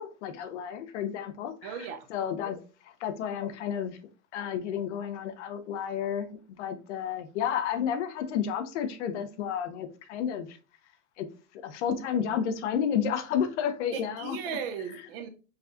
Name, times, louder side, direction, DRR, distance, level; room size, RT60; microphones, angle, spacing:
voice 1, 0.0-4.0 4.3-6.3 6.6-10.6 11.2-11.3 11.5-14.4, left 8 dB, 50° left, 0.6 m, -31 dB
voice 2, 1.6-2.1 13.9-15.3, right 7 dB, 40° right, 0.7 m, -36 dB
4.8 x 2.3 x 2.6 m
hypercardioid pair, 145°, 45 cm